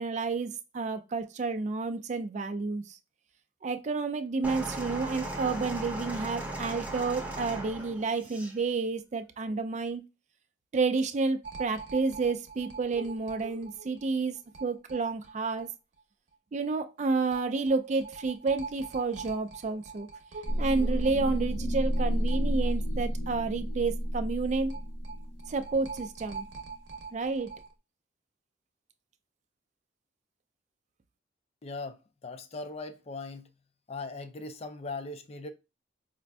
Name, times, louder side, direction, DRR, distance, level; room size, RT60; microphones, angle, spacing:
voice 1, 0.0-3.0 3.6-10.0 10.7-14.4 14.6-15.7 16.5-20.1 20.6-24.8 25.5-26.5 27.1-27.5, right 4 dB, 40° right, 0.3 m, -30 dB
sound 1, 4.4-8.6 9.4-9.6, right 1 dB, 10° right, 0.7 m, -37 dB
sound 2, 11.4-15.7 16.0-16.1 16.3-16.4 17.3-23.1 23.4-23.5 24.7-27.7, right 4 dB, 65° right, 0.7 m, -44 dB
sound 3, 20.5-26.5, equal, 80° left, 0.9 m, -31 dB
voice 2, 31.6-33.5 33.9-35.5, left 3 dB, 35° left, 0.4 m, -39 dB
5.0 x 2.5 x 2.2 m
head